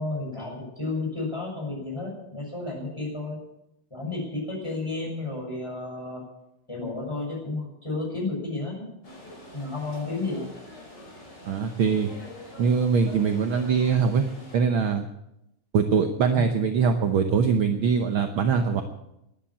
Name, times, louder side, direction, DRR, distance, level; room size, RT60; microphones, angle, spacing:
voice 1, 0.0-3.4 3.9-6.2 6.7-8.9 9.5-10.4 16.3-16.6, left 3 dB, 10° left, -2 dB, 6.5 m, -32 dB
sound 1, 9.0-14.6, left 1 dB, 35° left, 6.0 m, -45 dB
voice 2, 11.5-12.1 12.6-14.2 14.5-15.0 15.7-18.8, right 6 dB, 65° right, 6 dB, 1.3 m, -22 dB
13.0 x 11.0 x 8.7 m, 0.85 s
omnidirectional pair, 3.4 m